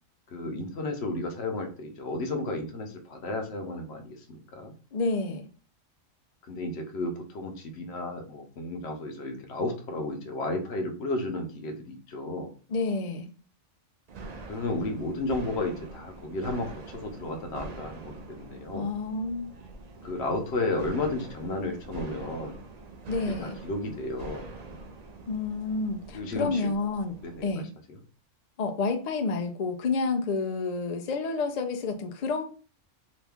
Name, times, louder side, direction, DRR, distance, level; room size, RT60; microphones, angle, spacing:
voice 1, 0.3-4.7 6.5-12.5 14.5-18.9 20.0-22.5 23.3-24.5 26.1-26.7 27.2-27.5 27.9-28.0, left 2 dB, 60° left, 4 dB, 0.9 m, -33 dB
voice 2, 4.9-5.4 12.7-13.3 18.7-19.5 23.1-23.6 25.3-27.1 27.4-27.7 28.6-32.4, left 3 dB, 80° left, 4 dB, 0.3 m, -29 dB
sound 1, 14.1-27.5, right 3 dB, 70° right, 0.4 m, -44 dB
2.9 x 2.5 x 3.4 m, 0.38 s
omnidirectional pair, 1.3 m